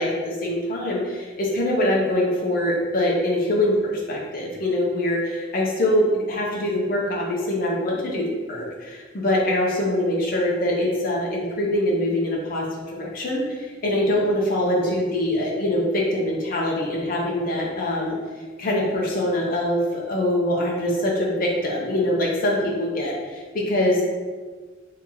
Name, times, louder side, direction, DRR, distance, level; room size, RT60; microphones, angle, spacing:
voice 1, 0.0-18.2 18.6-24.0, left 1 dB, 50° left, -3 dB, 0.7 m, -23 dB
2.8 x 2.8 x 3.7 m, 1.4 s
head